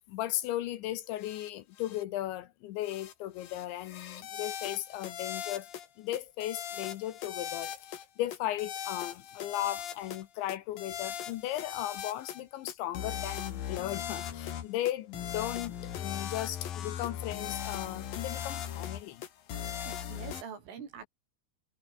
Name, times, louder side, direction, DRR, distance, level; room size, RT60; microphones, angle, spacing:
voice 1, 0.1-5.7 6.0-19.2, left 14 dB, 75° left, 3.1 m, -36 dB
sound 1, 1.2-1.5 1.8-2.0 2.8-3.1 3.4-5.9 6.1-8.1 8.3-10.2 10.5-12.4 12.7-20.4, left 9 dB, 55° left, 3.3 m, -39 dB
voice 2, 19.9-21.1, right 7 dB, 70° right, 7.2 m, -44 dB
omnidirectional pair, 5.9 m